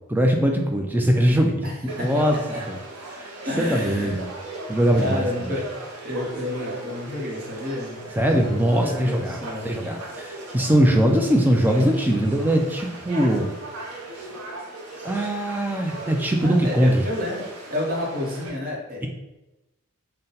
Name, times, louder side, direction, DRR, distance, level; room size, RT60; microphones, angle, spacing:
voice 1, 0.1-2.4 2.7-2.8 3.1-4.3 4.7-5.5 8.2-13.5 15.0-17.0 19.0-19.1, equal, 10° right, 2 dB, 0.3 m, -21 dB
voice 2, 1.6-2.7 3.4-4.2 4.7-8.1 8.6-9.7 16.4-17.4 17.7-19.1, left 1 dB, 40° right, -2 dB, 0.9 m, -30 dB
Conversation / Crowd, 1.9-18.5, right 2 dB, 80° right, 0.7 m, -38 dB
4.0 x 2.2 x 3.9 m, 0.99 s
head